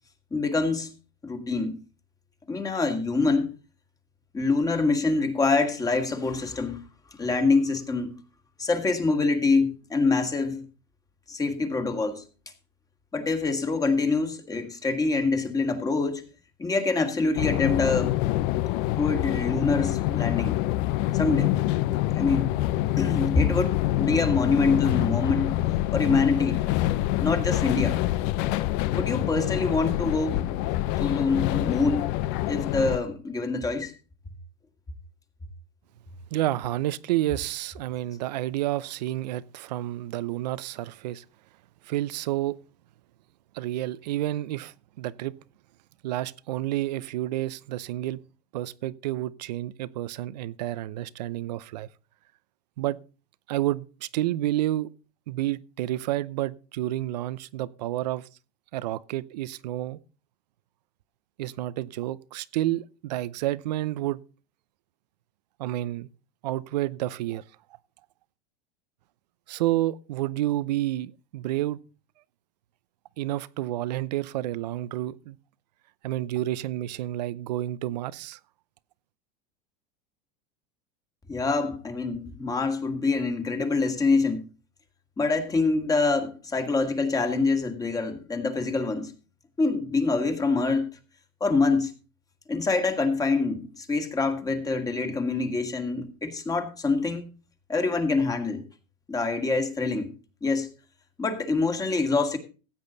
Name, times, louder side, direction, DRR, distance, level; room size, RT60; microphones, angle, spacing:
voice 1, 0.3-0.9 1.2-1.8 2.5-3.5 4.3-6.8 7.1-8.2 8.6-10.6 11.3-12.2 13.1-16.2 16.6-18.1 19.0-20.6 21.1-21.5 22.1-22.6 23.0-25.6 25.9-26.6 27.2-28.0 28.9-30.6 31.0-32.1 32.5-33.9 81.3-84.4 85.2-89.1 89.6-90.9 91.4-91.9 92.5-97.3 97.7-98.6 99.1-100.1 100.4-100.7 101.2-102.4, left 3 dB, 15° left, 2.1 m, -25 dB
sound 1, 17.4-33.0, left 15 dB, 60° left, 0.7 m, -26 dB
voice 2, 36.3-41.2 41.8-42.6 43.5-45.3 46.0-48.2 48.5-51.9 52.8-53.0 53.5-54.9 55.3-58.3 58.7-60.0 61.4-64.2 65.6-66.1 66.4-67.4 69.5-71.8 73.2-75.4 76.0-78.4, right 15 dB, 85° right, 0.7 m, -30 dB
15.5 x 8.6 x 4.0 m
supercardioid pair, 125°, 21 cm